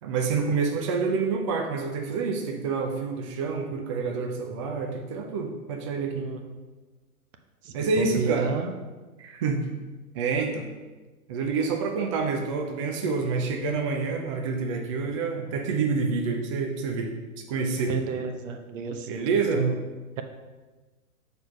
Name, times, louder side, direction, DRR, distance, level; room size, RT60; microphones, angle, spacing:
voice 1, 0.0-6.3 7.7-8.5 9.2-9.6 10.1-10.7 11.3-17.1 17.5-17.9 19.1-19.6, right 4 dB, 25° right, 2 dB, 0.3 m, -27 dB
voice 2, 6.1-6.6 7.6-8.7 17.8-19.2 19.5-19.7, right 6 dB, 60° right, 6 dB, 1.0 m, -31 dB
6.5 x 4.7 x 4.8 m, 1.3 s
hypercardioid pair, 125°, 45 cm